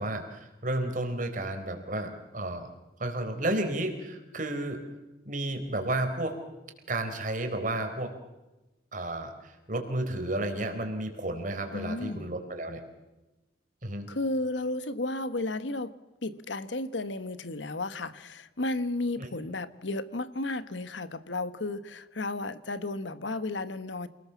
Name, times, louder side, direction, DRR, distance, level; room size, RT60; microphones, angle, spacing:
voice 1, 0.0-2.7 3.0-4.8 5.3-6.4 6.9-8.1 8.9-12.8 13.8-14.0 19.2-19.3, right 1 dB, 45° right, 6 dB, 4.2 m, -32 dB
voice 2, 11.7-12.3 14.1-15.9 16.2-24.1, left 2 dB, 90° left, 13 dB, 1.4 m, -33 dB
28.0 x 20.0 x 7.2 m, 1.1 s
head